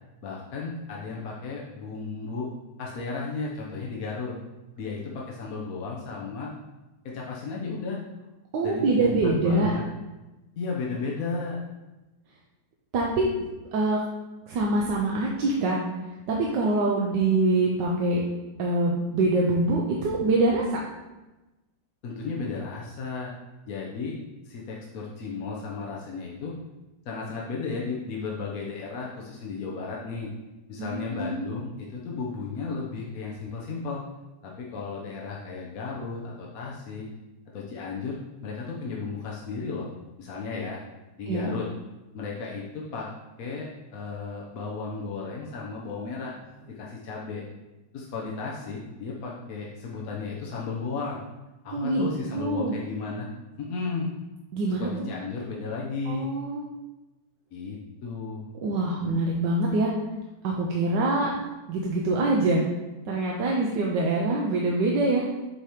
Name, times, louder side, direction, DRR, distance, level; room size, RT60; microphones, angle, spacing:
voice 1, 0.2-2.5 2.8-4.3 4.8-6.5 7.0-8.0 8.6-9.8 10.6-11.6 22.0-23.3 23.7-24.1 24.4-26.5 27.1-30.3 30.7-34.0 34.4-37.1 37.5-38.2 38.4-39.9 40.2-40.8 41.2-41.7 42.1-43.1 43.4-46.3 46.7-47.4 47.9-51.2 51.6-53.3 53.6-54.1 54.8-56.3 57.5-58.5, left 4 dB, 60° left, -3 dB, 1.1 m, -34 dB
voice 2, 8.5-9.7 12.9-13.3 13.7-14.0 14.5-15.8 16.3-18.2 18.6-20.8 30.8-31.4 41.3-41.5 51.7-52.1 52.3-52.8 54.5-54.9 56.1-56.6 58.6-59.9 60.4-61.3 61.7-62.6 63.1-65.3, right 2 dB, 75° right, -2 dB, 1.4 m, -24 dB
7.9 x 2.9 x 4.9 m, 1.1 s
omnidirectional pair, 2.0 m